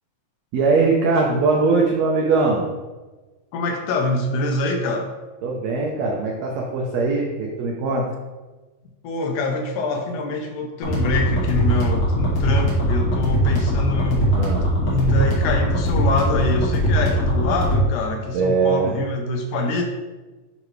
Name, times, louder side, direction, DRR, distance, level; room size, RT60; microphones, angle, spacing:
voice 1, 0.5-2.6 5.4-8.1 14.3-14.7 18.3-18.9, right 4 dB, 75° right, -1 dB, 1.6 m, -21 dB
voice 2, 3.5-5.1 9.0-14.3 14.9-19.9, left 2 dB, 75° left, 3 dB, 1.9 m, -24 dB
sound 1, 10.8-17.8, equal, 45° left, 2.3 m, -21 dB
9.5 x 3.9 x 3.1 m, 1.2 s
omnidirectional pair, 3.9 m